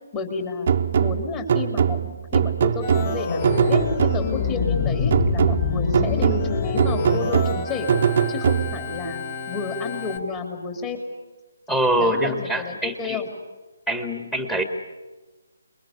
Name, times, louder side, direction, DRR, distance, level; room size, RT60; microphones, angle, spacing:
voice 1, 0.1-0.7 1.0-7.9 8.3-11.0 12.0-13.3, left 4 dB, 25° left, 4 dB, 3.1 m, -31 dB
sound 1, 0.7-4.5 5.1-9.0, right 7 dB, 40° right, 1.0 m, -22 dB
Organ, 2.8-10.2, left 5 dB, 40° left, 3.9 m, -27 dB
voice 2, 11.7-13.2 13.9-14.6, right 1 dB, 5° left, 6 dB, 1.9 m, -24 dB
27.0 x 22.0 x 8.4 m, 1.2 s
figure-of-eight pair, 145°, 0 cm